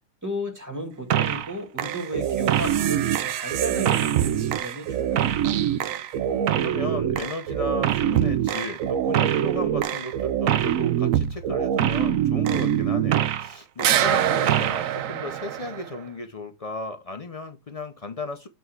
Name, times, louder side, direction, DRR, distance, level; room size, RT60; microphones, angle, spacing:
voice 1, 0.2-5.4, right 1 dB, 10° right, 2.0 m, -34 dB
sound 1, 1.1-1.5 1.8-13.5 13.8-16.0, right 10 dB, 70° right, 0.9 m, -24 dB
voice 2, 6.3-18.5, left 2 dB, 60° left, 0.3 m, -35 dB
7.9 x 3.9 x 4.6 m
omnidirectional pair, 1.7 m